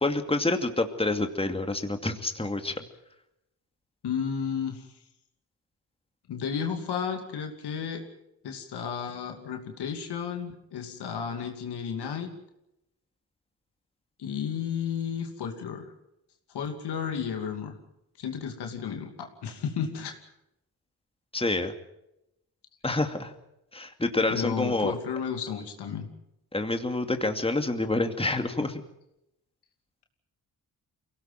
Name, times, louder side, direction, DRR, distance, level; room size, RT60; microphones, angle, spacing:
voice 1, 0.0-2.8 21.3-21.7 22.8-23.3 23.7-24.9 26.5-28.8, left 2 dB, 15° left, 6 dB, 2.5 m, -27 dB
voice 2, 4.0-4.9 6.3-8.1 8.4-12.3 14.2-15.9 16.5-17.7 18.2-20.2 24.3-26.1, left 7 dB, 80° left, 4 dB, 2.7 m, -33 dB
23.5 x 17.5 x 7.7 m, 0.85 s
supercardioid pair, 50°, 39 cm